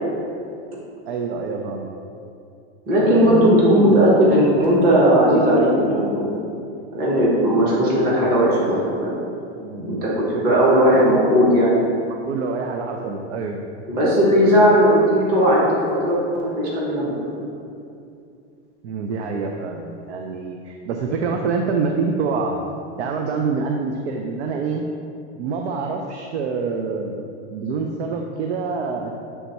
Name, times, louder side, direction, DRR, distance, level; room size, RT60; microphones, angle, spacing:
voice 1, 1.1-1.9 3.0-4.0 7.6-8.5 9.6-10.0 10.3-11.2 12.0-13.6 18.8-22.5 23.0-24.8 25.4-29.2, right 4 dB, 75° right, 2 dB, 0.6 m, -26 dB
voice 2, 2.9-6.4 6.9-9.2 9.8-11.8 13.9-17.1 17.4-17.5, equal, 25° right, -5 dB, 1.1 m, -17 dB
7.3 x 3.5 x 4.1 m, 2.5 s
supercardioid pair, 170°, 34 cm